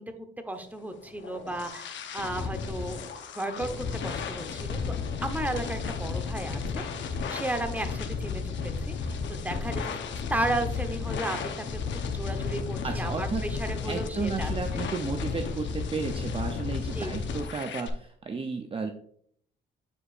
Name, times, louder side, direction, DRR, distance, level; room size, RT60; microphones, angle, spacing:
voice 1, 0.0-3.0 3.3-4.8 5.2-6.8 7.3-10.0 10.3-14.5 16.9-17.1, right 1 dB, 10° right, 6 dB, 0.9 m, -34 dB
sound 1, 0.9-17.9, left 5 dB, 70° left, 0.9 m, -33 dB
voice 2, 12.8-13.4 13.8-18.9, right 4 dB, 25° right, 5 dB, 0.6 m, -33 dB
8.5 x 4.9 x 2.5 m, 0.63 s
cardioid pair, 90°, 20 cm